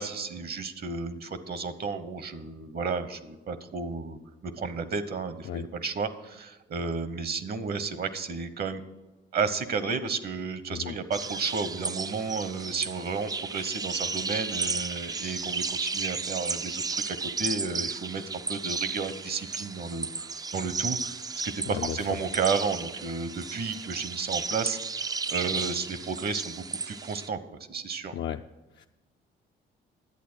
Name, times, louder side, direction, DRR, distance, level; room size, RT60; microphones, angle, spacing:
voice 1, 0.0-8.8 9.3-18.2 18.5-24.8 25.3-28.1, right 5 dB, 50° right, 13 dB, 1.0 m, -32 dB
sound 1, 11.1-27.3, right 4 dB, 20° right, 0.3 m, -34 dB
voice 2, 28.1-28.4 28.8-28.9, left 10 dB, 60° left, 4 dB, 0.4 m, -34 dB
11.0 x 8.2 x 6.2 m, 1.1 s
cardioid pair, 90°, 20 cm